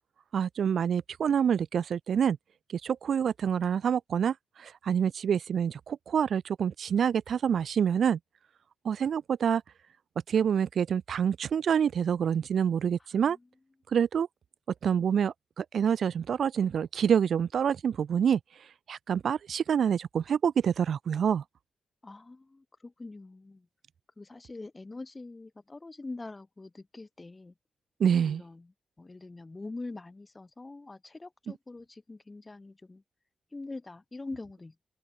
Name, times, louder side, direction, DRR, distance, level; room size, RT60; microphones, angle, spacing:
voice 1, 0.3-2.4 2.7-8.2 8.8-9.6 10.3-13.4 13.9-14.3 14.8-18.4 18.9-21.4 28.0-28.4, right 8 dB, 70° right, 0.6 m, -27 dB
voice 2, 13.0-13.5 22.0-23.7 24.2-27.5 28.2-33.0 33.5-34.9, left 2 dB, 25° left, 5.3 m, -44 dB
open air
cardioid pair, 100°, 0 cm